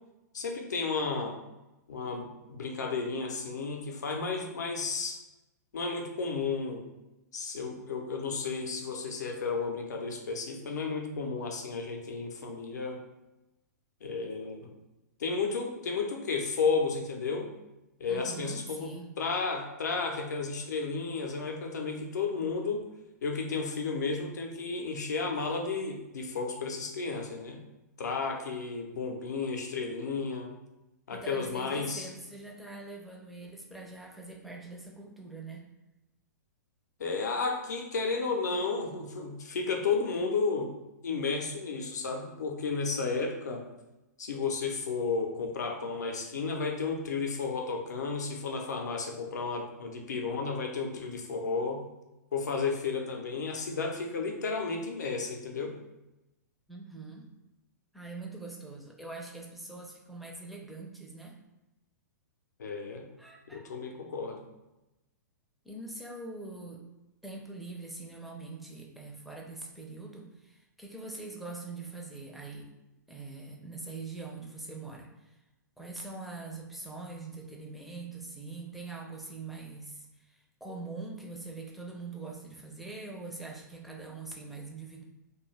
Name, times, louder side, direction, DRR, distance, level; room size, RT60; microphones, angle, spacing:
voice 1, 0.3-1.4 1.9-5.2 5.7-6.8 7.3-13.0 14.0-14.7 15.2-17.5 18.0-18.9 19.2-22.9 23.2-27.6 28.0-30.5 31.1-32.1 37.0-40.7 41.0-43.7 44.2-51.8 52.3-55.8 62.6-63.1 63.5-64.4, left 4 dB, 70° left, 3 dB, 0.6 m, -33 dB
voice 2, 18.1-19.1 31.1-35.7 56.7-57.3 57.9-61.4 63.2-63.7 65.6-66.8 67.2-72.7 73.1-75.4 75.8-85.0, right 3 dB, ahead, -2 dB, 0.5 m, -43 dB
2.3 x 2.3 x 3.2 m, 0.97 s
figure-of-eight pair, 110°, 10 cm